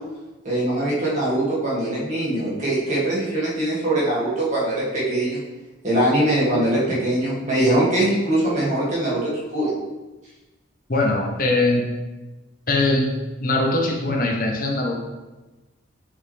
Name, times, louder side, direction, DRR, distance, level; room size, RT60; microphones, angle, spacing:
voice 1, 0.4-5.4 5.8-9.7, right 1 dB, 35° right, -8 dB, 2.3 m, -22 dB
voice 2, 10.9-11.8 12.7-13.1 13.4-14.9, left 2 dB, 45° left, 0 dB, 0.9 m, -21 dB
6.8 x 5.5 x 3.3 m, 1.1 s
head